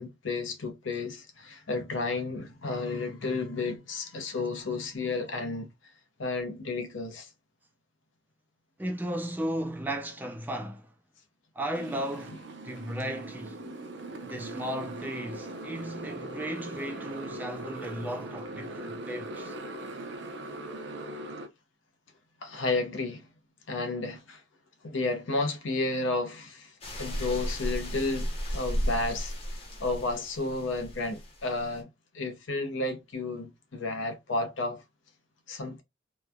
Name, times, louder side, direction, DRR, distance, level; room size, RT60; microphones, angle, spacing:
voice 1, 0.0-5.7 6.2-7.3 12.3-12.4 22.4-23.3 23.7-24.4 24.8-29.3 29.8-31.9 32.1-34.8 35.5-35.8, left 3 dB, 80° left, 0.7 m, -32 dB
voice 2, 8.8-10.9 11.6-12.4 12.6-13.6 14.2-19.6, right 1 dB, 10° right, 0.3 m, -35 dB
Motorcycle, 11.7-21.5, right 2 dB, 65° right, 0.6 m, -40 dB
sound 1, 26.8-31.8, equal, 30° left, 0.8 m, -34 dB
3.0 x 2.1 x 2.3 m
head